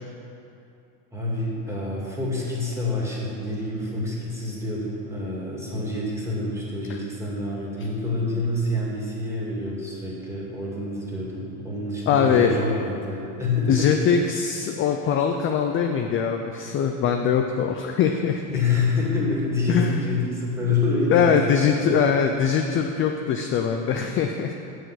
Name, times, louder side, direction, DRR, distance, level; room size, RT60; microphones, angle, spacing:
voice 1, 1.1-13.9 18.4-21.9, left 2 dB, 5° right, -5 dB, 2.1 m, -27 dB
voice 2, 12.1-12.6 13.7-18.4 19.7-20.1 21.1-24.5, left 7 dB, 30° left, 4 dB, 0.4 m, -22 dB
6.9 x 6.3 x 7.7 m, 2.7 s
supercardioid pair, 125°, 45 cm